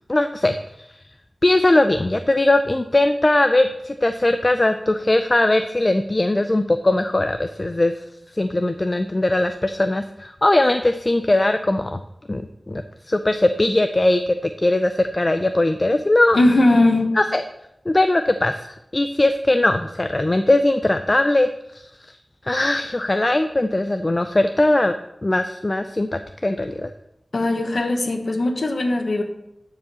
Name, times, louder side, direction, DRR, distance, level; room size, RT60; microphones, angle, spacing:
voice 1, 0.1-0.6 0.9-1.0 1.4-7.9 8.3-12.0 12.3-16.4 17.2-17.4 17.9-22.1 22.4-24.9 25.2-26.9, left 2 dB, 35° left, 8 dB, 0.5 m, -20 dB
voice 2, 16.3-17.1 27.3-29.2, left 2 dB, 80° left, 4 dB, 1.3 m, -19 dB
10.5 x 4.9 x 7.0 m, 0.84 s
wide cardioid pair, 75°, 0 cm